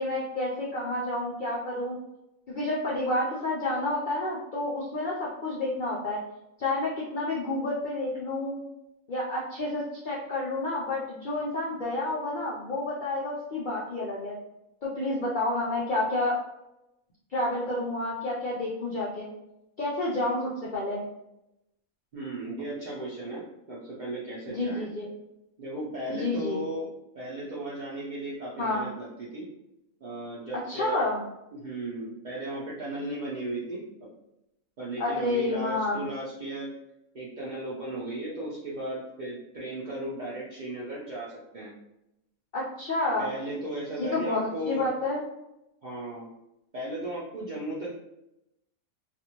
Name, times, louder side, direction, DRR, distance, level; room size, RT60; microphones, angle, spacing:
voice 1, 0.0-2.0 2.5-6.2 6.6-8.6 9.1-14.4 14.8-16.4 17.3-19.3 19.8-21.0 24.5-25.1 26.1-26.6 28.6-28.9 30.7-31.2 35.0-36.1 42.5-43.3 44.0-45.2, left 2 dB, 65° left, -5 dB, 0.5 m, -29 dB
voice 2, 22.1-24.9 25.6-26.9 27.1-29.5 30.0-31.1 31.6-33.8 34.8-36.7 37.1-41.7 43.2-44.9 45.8-46.3 46.7-47.9, right 1 dB, 55° right, -7 dB, 0.5 m, -35 dB
2.6 x 2.4 x 2.9 m, 0.87 s
omnidirectional pair, 1.5 m